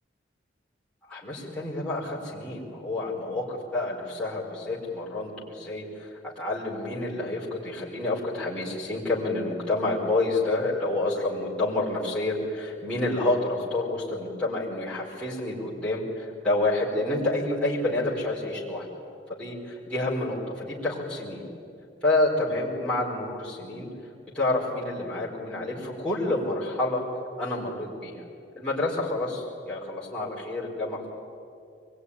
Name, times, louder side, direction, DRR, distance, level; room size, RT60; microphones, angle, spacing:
voice 1, 1.1-18.9 19.4-21.4 22.0-23.9 24.3-27.0 27.4-28.2 28.5-31.1, left 2 dB, 5° left, -8 dB, 4.7 m, -28 dB
24.5 x 21.5 x 9.9 m, 2.6 s
head